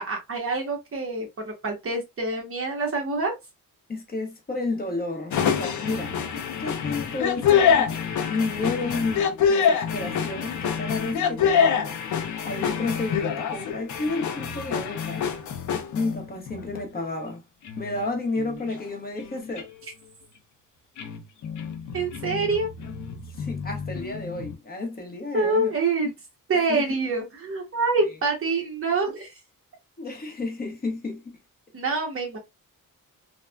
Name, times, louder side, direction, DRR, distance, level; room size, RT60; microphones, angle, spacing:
voice 1, 0.0-3.3 21.9-22.7 25.3-26.1 26.5-29.3 31.7-32.4, right 3 dB, 40° right, 0.9 m, -26 dB
voice 2, 3.9-6.1 6.6-7.9 8.3-12.0 12.4-15.3 15.9-17.4 17.8-19.7 23.3-25.7 26.7-26.9 28.0-28.2 30.0-31.4, left 3 dB, 25° left, 0.8 m, -31 dB
sound 1, 5.3-17.3 17.6-18.1 18.4-18.9 19.2-19.6 21.0-24.6, left 7 dB, 55° left, 0.5 m, -26 dB
3.3 x 2.1 x 2.2 m
wide cardioid pair, 160°, 35 cm